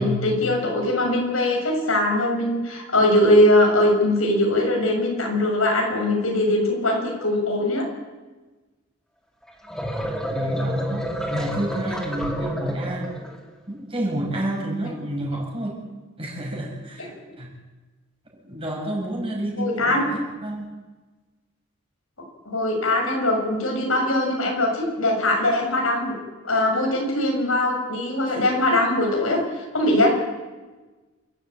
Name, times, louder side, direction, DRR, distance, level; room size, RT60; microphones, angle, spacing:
voice 1, 0.0-7.8 17.0-17.1 19.6-20.0 22.5-26.1 26.4-29.4 29.7-30.1, left 1 dB, 85° left, 1 dB, 7.0 m, -21 dB
sound 1, 9.5-13.4, equal, 5° left, 2.6 m, -30 dB
voice 2, 10.3-13.2 13.7-15.9 16.2-17.1 17.4-17.5 18.3-20.7, right 1 dB, 25° right, -1 dB, 6.9 m, -29 dB
28.0 x 14.0 x 8.9 m, 1.2 s
head